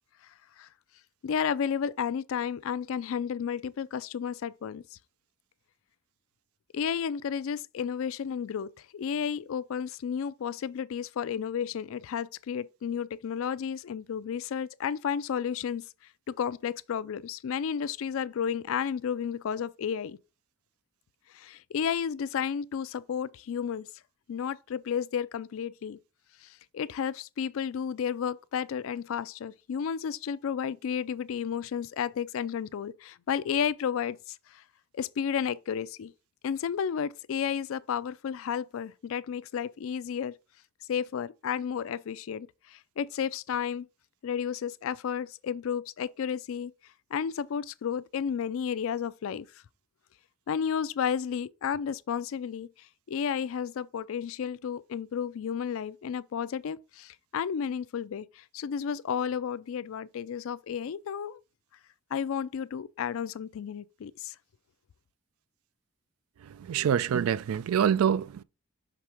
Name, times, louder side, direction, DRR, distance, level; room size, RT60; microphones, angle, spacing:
voice 1, 1.2-4.8 6.7-15.9 16.3-20.2 21.3-23.9 24.3-26.0 26.4-26.5 26.7-34.6 34.9-36.1 36.4-40.3 40.9-43.9 44.2-46.7 47.1-49.5 50.5-52.7 53.1-61.4 62.1-64.3, left 7 dB, 70° left, 0.4 m, -32 dB
voice 2, 66.4-68.4, right 8 dB, 85° right, 0.3 m, -26 dB
5.9 x 3.4 x 4.8 m
head